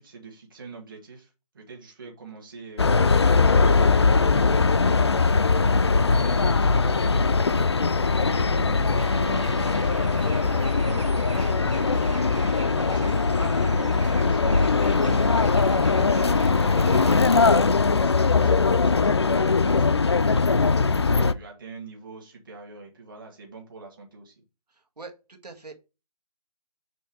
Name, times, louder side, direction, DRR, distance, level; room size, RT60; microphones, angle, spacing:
voice 1, 0.0-3.8 4.4-7.7 8.2-12.2 12.7-24.4, right 3 dB, 35° right, 0 dB, 1.6 m, -44 dB
sound 1, 2.8-21.3, left 4 dB, 45° left, 0.4 m, -21 dB
Bird, 9.0-17.3, right 3 dB, 50° right, 1.5 m, -40 dB
voice 2, 25.4-25.7, right 3 dB, 85° right, 2 dB, 1.9 m, -41 dB
7.1 x 3.4 x 4.7 m, 0.29 s
figure-of-eight pair, 170°, 20 cm